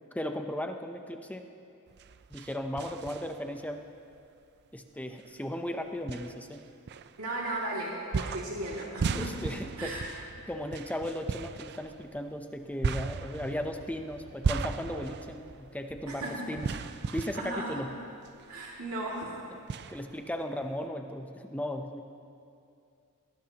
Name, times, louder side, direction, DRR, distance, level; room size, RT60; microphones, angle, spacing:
voice 1, 0.1-1.5 2.3-3.8 4.7-6.6 9.1-10.0 10.5-16.7 17.1-17.9 19.9-22.0, left 1 dB, 5° left, 5 dB, 0.7 m, -36 dB
sound 1, 1.9-3.6 4.1-4.2 5.2-5.3 6.1-7.5 8.1-18.5 18.8-18.9 19.7-20.8, right 5 dB, 50° right, 0.4 m, -36 dB
voice 2, 7.2-9.3 9.8-10.1 16.1-16.5 17.3-17.8 18.5-19.4, right 1 dB, 75° right, -4 dB, 2.5 m, -35 dB
21.5 x 18.5 x 2.9 m, 2.5 s
head